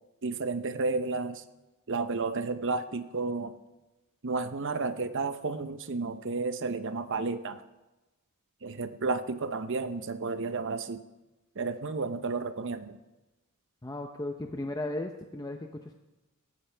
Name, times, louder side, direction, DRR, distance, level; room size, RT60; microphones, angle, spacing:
voice 1, 0.2-1.4 1.9-3.5 4.2-7.6 8.6-11.0 11.6-13.0, right 3 dB, 55° right, 11 dB, 0.7 m, -32 dB
voice 2, 13.8-15.9, left 2 dB, 15° left, 4 dB, 0.6 m, -36 dB
18.0 x 14.5 x 3.4 m, 1.1 s
head